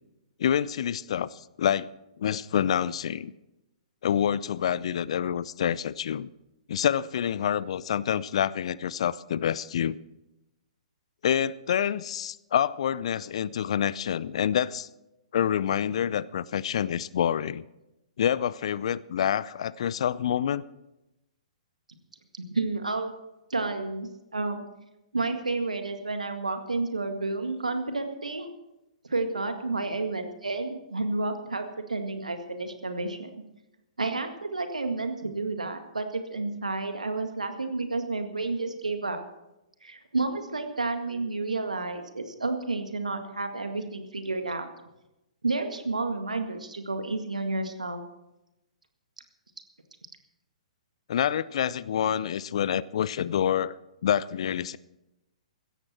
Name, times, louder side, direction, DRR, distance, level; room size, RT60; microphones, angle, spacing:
voice 1, 0.4-1.9 2.2-3.3 4.0-6.3 6.7-10.0 11.2-14.9 15.3-17.6 18.2-20.6 51.1-53.7 54.0-54.8, left 9 dB, 55° left, 21 dB, 0.5 m, -27 dB
voice 2, 22.3-23.1 23.5-24.6 25.1-28.5 29.0-33.4 34.0-39.2 39.8-44.7 45.4-48.0, right 3 dB, 80° right, 7 dB, 1.9 m, -31 dB
16.0 x 14.0 x 4.4 m, 0.94 s
figure-of-eight pair, 120°, 4 cm